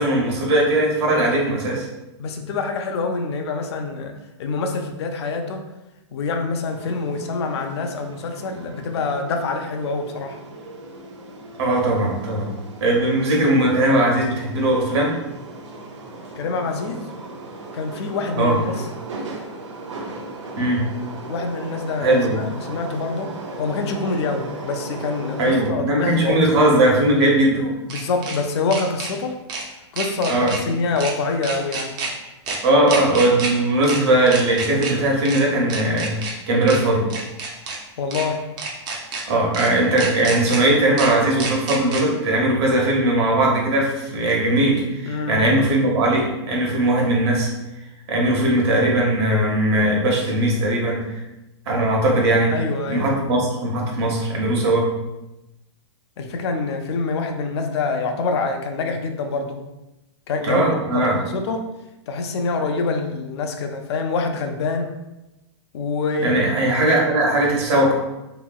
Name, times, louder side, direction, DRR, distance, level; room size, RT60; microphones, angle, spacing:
voice 1, 0.0-1.9 11.6-12.5 12.8-15.1 18.4-18.6 20.6-20.8 22.0-22.4 25.4-27.6 30.3-30.5 32.6-37.1 39.3-47.5 48.1-51.1 51.7-52.5 52.9-54.9 60.5-61.2 66.2-68.0, right 1 dB, 60° right, -2 dB, 1.0 m, -19 dB
voice 2, 2.2-4.1 4.4-5.6 6.1-10.4 16.3-17.1 17.7-18.7 21.3-26.4 27.9-29.4 29.9-31.9 38.0-38.4 45.0-45.4 52.5-53.1 56.2-59.6 60.3-60.7 60.9-61.7 62.1-65.0 65.7-66.4, left 4 dB, 65° left, 4 dB, 0.5 m, -26 dB
sound 1, 6.7-25.7, right 2 dB, 90° right, 0.6 m, -37 dB
sound 2, 24.1-24.2 26.5-28.4 28.7-29.1 29.5-29.6 30.0-30.6 31.0-31.1 31.4-32.1 32.5-32.6 32.9-33.5 33.8-34.0 34.3-34.9 35.2-35.4 35.7-36.3 36.7-36.8 37.1-37.8 38.1-38.2 38.6-39.2 39.5-39.7 40.0-40.6 41.0-41.1 41.4-42.0, right 4 dB, 30° right, 0.6 m, -29 dB
2.9 x 2.7 x 2.3 m, 0.97 s
hypercardioid pair, 135°, 15 cm